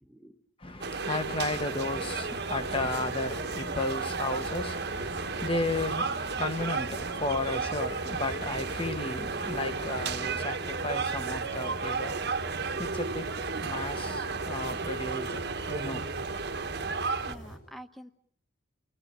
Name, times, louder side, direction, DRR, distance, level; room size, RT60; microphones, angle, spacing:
voice 1, 0.0-0.4 17.2-18.1, equal, ahead, 1.2 m, -48 dB
voice 2, 0.6-16.0, left 2 dB, 25° left, 1.4 m, -34 dB
sound 1, 0.8-17.3, right 4 dB, 55° right, 1.3 m, -33 dB
sound 2, 1.2-17.6, equal, 60° left, 7.3 m, -43 dB
30.0 x 18.0 x 8.9 m
head